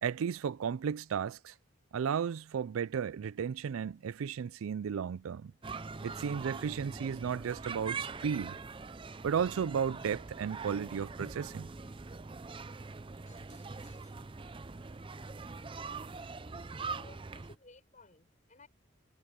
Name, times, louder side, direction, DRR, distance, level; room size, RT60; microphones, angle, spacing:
voice 1, 0.0-1.5 1.9-5.5 6.0-8.6 9.2-11.7, right 7 dB, 80° right, 0.4 m, -34 dB
sound 1, 5.6-17.6, right 4 dB, 25° right, 0.5 m, -43 dB
voice 2, 12.8-14.2 16.8-18.7, left 3 dB, 35° left, 6.8 m, -59 dB
head